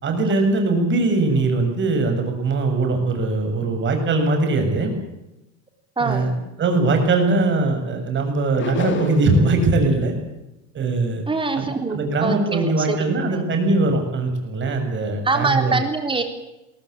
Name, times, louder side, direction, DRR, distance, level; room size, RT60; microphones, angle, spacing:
voice 1, 0.0-4.9 6.0-6.3 6.6-10.1 10.7-11.2 11.6-15.7, right 3 dB, 30° right, 5 dB, 7.0 m, -21 dB
voice 2, 6.0-6.3 11.3-13.5 15.2-16.2, right 3 dB, 15° right, 6 dB, 3.6 m, -24 dB
sound 1, 8.6-9.5, left 5 dB, 30° left, 3.0 m, -28 dB
22.0 x 17.5 x 8.7 m, 0.93 s
supercardioid pair, 120°, 37 cm